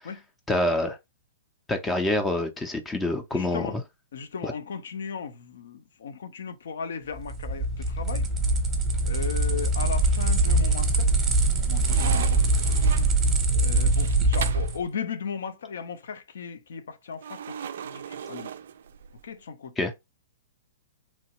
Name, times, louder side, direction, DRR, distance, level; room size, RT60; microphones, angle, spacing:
voice 1, 0.5-1.0 1.7-3.7 4.4-4.5 19.8-19.9, left 1 dB, 10° left, 0.5 m, -26 dB
voice 2, 3.3-3.8 4.1-8.3 9.0-11.1 11.7-12.4 13.5-18.5 19.2-19.7, left 6 dB, 70° left, 0.6 m, -36 dB
sound 1, 7.2-14.8, right 2 dB, 20° right, 0.7 m, -23 dB
sound 2, 10.1-10.7 11.1-14.8 17.2-19.3, right 8 dB, 65° right, 0.3 m, -38 dB
3.0 x 2.2 x 2.9 m
hypercardioid pair, 125°, 0 cm